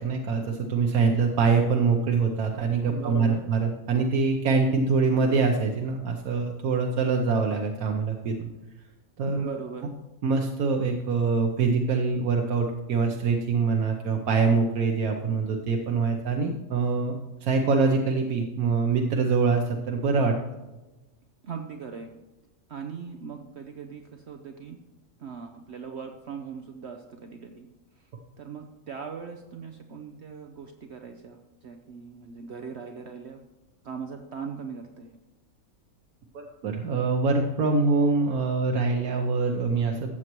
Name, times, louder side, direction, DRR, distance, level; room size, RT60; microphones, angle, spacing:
voice 1, 0.0-8.5 9.2-9.6 10.2-17.2 17.4-20.4 36.3-40.1, right 4 dB, 90° right, 2 dB, 1.3 m, -24 dB
voice 2, 2.9-3.5 9.3-9.9 21.4-22.1 22.7-24.8 25.2-27.7 28.0-28.1 28.4-33.4 33.8-35.2, right 6 dB, 60° right, 4 dB, 0.9 m, -39 dB
13.5 x 7.9 x 3.0 m, 1.1 s
omnidirectional pair, 1.5 m